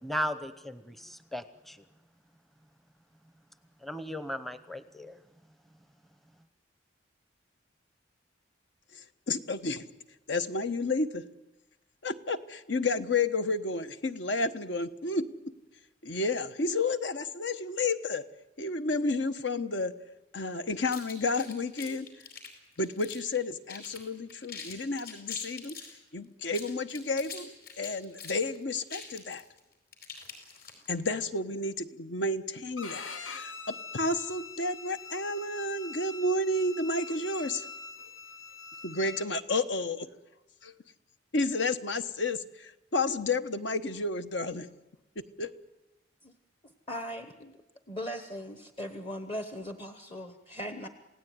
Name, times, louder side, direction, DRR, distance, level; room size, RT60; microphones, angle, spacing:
voice 1, 0.0-1.9 3.8-5.2, equal, ahead, 12 dB, 0.8 m, -36 dB
voice 2, 9.3-9.9 10.3-11.2 12.0-15.3 16.0-18.2 18.6-19.9 20.3-22.1 22.8-25.8 26.1-29.4 30.9-37.6 38.8-40.1 40.6-40.7 41.3-44.7 45.4-45.5, left 2 dB, 65° left, 11 dB, 1.1 m, -31 dB
sound 1, 20.8-23.4 23.7-24.0 24.3-25.9 26.4-31.0, left 6 dB, 50° left, 5.1 m, -44 dB
Bowed string instrument, 32.8-39.3, left 4 dB, 85° left, 2.1 m, -44 dB
voice 3, 46.9-47.6 47.9-50.9, equal, 25° left, 8 dB, 1.1 m, -39 dB
28.0 x 17.0 x 9.5 m, 1.0 s
head